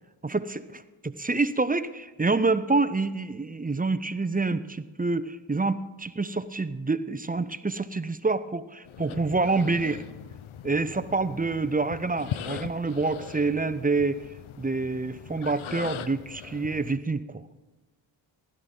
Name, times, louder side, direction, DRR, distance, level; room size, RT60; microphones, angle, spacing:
voice 1, 0.2-10.0 10.6-14.2 14.6-17.4, right 3 dB, 20° right, 13 dB, 0.7 m, -27 dB
sound 1, 8.8-17.0, left 9 dB, 80° left, 0.7 m, -40 dB
15.5 x 12.5 x 3.8 m, 1.1 s
cardioid pair, 50°, 48 cm